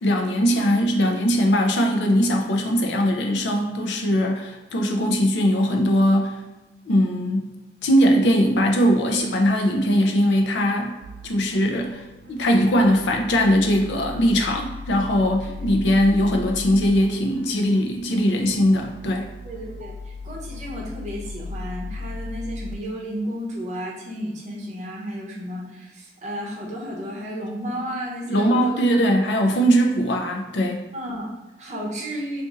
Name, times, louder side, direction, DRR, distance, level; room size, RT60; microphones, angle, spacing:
voice 1, 0.0-6.4 6.9-7.5 7.8-10.9 11.2-12.0 12.3-19.3 28.3-30.8, equal, 85° left, 2 dB, 0.5 m, -20 dB
sound 1, 11.0-22.7, left 2 dB, 75° right, 0.3 m, -37 dB
voice 2, 15.4-15.9 19.4-28.8 29.2-29.3 30.9-32.4, equal, 40° right, -4 dB, 0.7 m, -33 dB
2.6 x 2.4 x 3.9 m, 1.1 s
head